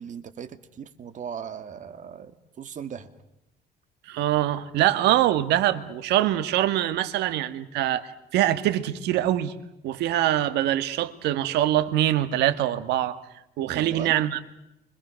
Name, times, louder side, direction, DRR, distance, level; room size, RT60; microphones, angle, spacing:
voice 1, 0.0-3.1 13.7-14.2, right 8 dB, 45° right, 11 dB, 2.2 m, -38 dB
voice 2, 4.1-9.5 9.8-13.2 13.6-14.4, right 13 dB, 85° right, 12 dB, 1.7 m, -24 dB
29.0 x 25.5 x 6.4 m, 0.88 s
cardioid pair, 110°, 17 cm